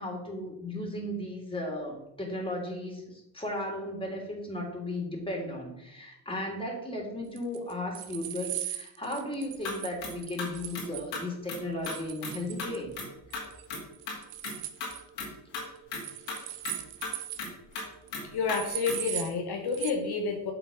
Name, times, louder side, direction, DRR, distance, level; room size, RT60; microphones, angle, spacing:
voice 1, 0.0-12.9, left 1 dB, 10° left, 0 dB, 2.9 m, -35 dB
sound 1, 7.4-11.1 11.8-13.0 13.3-13.7 13.9-15.0 15.9-17.5 17.8-17.9 18.1-18.2 18.5-19.3 19.7-19.9, right 13 dB, 90° right, 0.7 m, -39 dB
sound 2, 9.6-9.7 10.0-10.1 10.4-10.8 11.1-11.2 11.5-11.6 11.9-12.0 12.2-12.3 12.6-12.7 13.0-13.1 13.3-13.8 14.1-14.2 14.4-14.5 14.8-14.9 15.2-15.3 15.5-15.6 15.9-16.0 16.3-16.4 16.6-16.7 17.0-17.1 17.4-17.5 17.7-17.8 18.1-18.2 18.5-18.6 18.9-19.0, left 4 dB, 75° left, 2.5 m, -35 dB
voice 2, 18.3-20.5, left 5 dB, 60° left, 3 dB, 1.1 m, -29 dB
7.7 x 4.0 x 5.5 m, 0.86 s
supercardioid pair, 65°, 44 cm